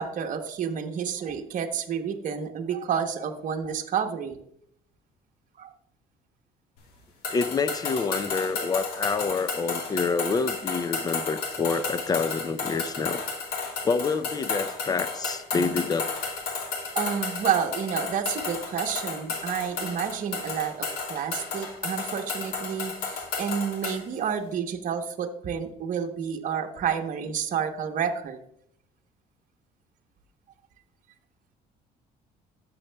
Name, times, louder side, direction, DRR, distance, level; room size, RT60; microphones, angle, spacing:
voice 1, 0.0-4.4 5.6-5.7 16.9-28.4, right 7 dB, 50° right, 3 dB, 1.0 m, -30 dB
sound 1, 7.2-24.0, left 4 dB, 80° left, 1.5 m, -33 dB
voice 2, 7.3-13.2 13.8-16.1, left 4 dB, 25° left, 14 dB, 0.5 m, -27 dB
12.0 x 7.1 x 2.2 m, 0.73 s
cardioid pair, 110°, 17 cm